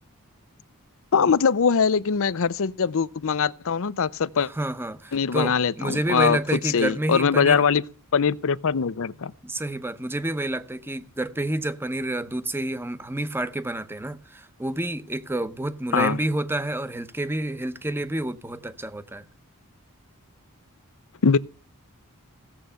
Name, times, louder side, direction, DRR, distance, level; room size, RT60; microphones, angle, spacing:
voice 1, 1.1-4.5 5.1-7.8 8.1-9.3 15.9-16.2 21.2-21.4, left 6 dB, 65° left, 0.6 m, -22 dB
voice 2, 4.4-7.6 9.4-19.2, right 1 dB, 10° right, 0.8 m, -29 dB
16.0 x 7.6 x 6.9 m
head